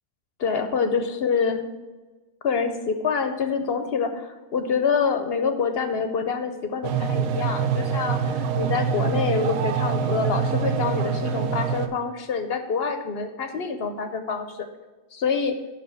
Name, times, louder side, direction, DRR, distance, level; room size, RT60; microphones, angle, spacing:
voice 1, 0.4-1.6 2.4-14.6 15.1-15.6, left 5 dB, 60° left, 7 dB, 0.7 m, -26 dB
sound 1, 6.8-11.9, right 6 dB, 80° right, 1.0 m, -25 dB
6.0 x 5.3 x 6.9 m, 1.2 s
omnidirectional pair, 1.5 m